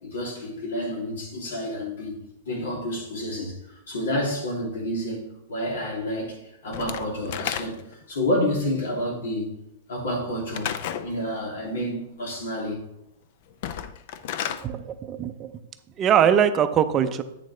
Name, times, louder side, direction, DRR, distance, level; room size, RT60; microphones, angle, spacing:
voice 1, 0.0-2.2 2.4-9.6 9.9-12.9, left 1 dB, 85° left, -2 dB, 2.9 m, -29 dB
Slam / Wood, 6.7-8.0 10.5-11.1 13.5-14.7, left 9 dB, 55° left, 0.5 m, -32 dB
voice 2, 14.6-15.5 16.0-17.2, right 9 dB, 25° right, 11 dB, 0.5 m, -21 dB
8.5 x 6.5 x 3.2 m, 0.86 s
hypercardioid pair, 145°, 0 cm